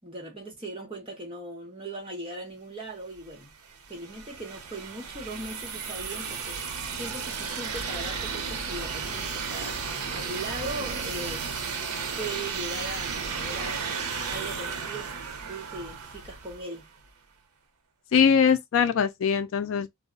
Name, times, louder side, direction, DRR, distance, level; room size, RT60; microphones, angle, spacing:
voice 1, 0.0-3.5 3.9-6.6 7.0-11.4 12.0-13.9 14.3-16.8, right 2 dB, 25° right, 0.9 m, -39 dB
sound 1, 3.2-16.9, right 5 dB, 85° right, 0.6 m, -34 dB
voice 2, 18.1-19.9, left 7 dB, 60° left, 0.3 m, -22 dB
2.2 x 2.0 x 3.6 m
head